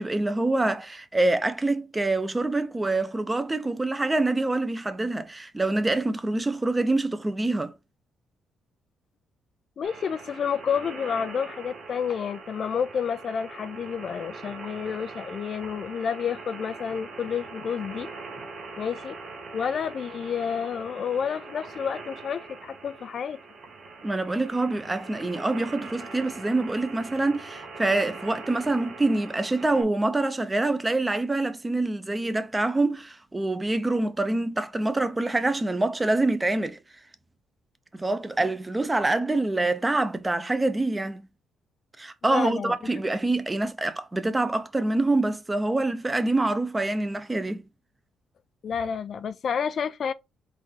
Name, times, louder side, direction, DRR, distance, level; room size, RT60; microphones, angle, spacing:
voice 1, 0.0-7.7 24.0-36.8 37.9-41.2 42.0-47.6, right 2 dB, 15° right, 0.6 m, -26 dB
voice 2, 9.8-18.1 18.8-19.2 19.5-23.4 42.2-42.8 48.6-50.1, left 7 dB, 55° left, 0.3 m, -30 dB
sound 1, 9.8-29.8, right 3 dB, 60° right, 1.4 m, -42 dB
4.1 x 2.6 x 4.5 m
cardioid pair, 90°, 0 cm